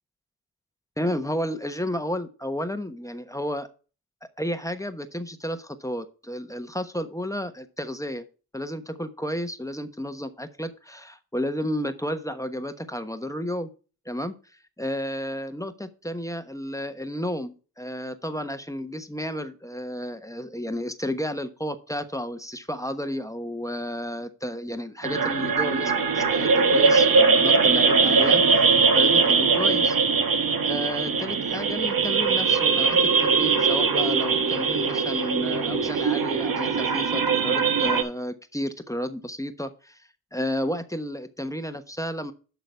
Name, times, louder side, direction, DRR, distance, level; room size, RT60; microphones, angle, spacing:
voice 1, 1.0-3.7 4.4-8.2 8.5-13.7 14.1-14.3 14.8-30.0 30.6-40.0 40.3-42.3, equal, 5° left, 9 dB, 1.1 m, -32 dB
sound 1, 25.0-38.0, right 5 dB, 50° right, 1.3 m, -21 dB
12.0 x 4.0 x 4.5 m, 0.35 s
supercardioid pair, 45°, 43 cm